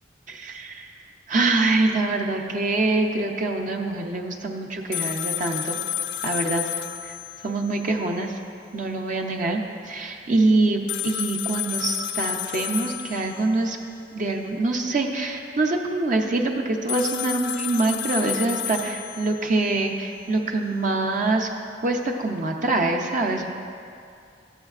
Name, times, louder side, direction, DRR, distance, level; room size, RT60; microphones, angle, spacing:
voice 1, 0.3-0.9 1.3-5.8 6.2-6.6 7.0-7.2 7.4-8.4 8.7-13.8 14.1-21.5 21.8-23.5, right 2 dB, 50° right, 3 dB, 0.6 m, -24 dB
sound 1, 4.9-8.0 8.2-8.3 10.9-13.9 16.9-19.9, left 11 dB, 75° left, 0.3 m, -31 dB
12.0 x 7.2 x 2.4 m, 2.4 s
head